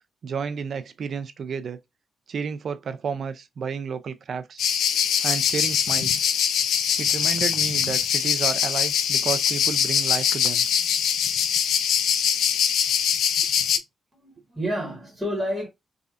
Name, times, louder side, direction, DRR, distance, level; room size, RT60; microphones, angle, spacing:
voice 1, 0.2-1.8 2.3-4.6 5.2-6.2 7.0-10.7, right 6 dB, 60° right, 0.4 m, -31 dB
sound 1, 4.6-13.8, left 8 dB, 90° left, 0.3 m, -23 dB
voice 2, 14.2-15.7, equal, 5° right, 1.4 m, -29 dB
3.2 x 2.5 x 2.4 m
cardioid pair, 105°, 0 cm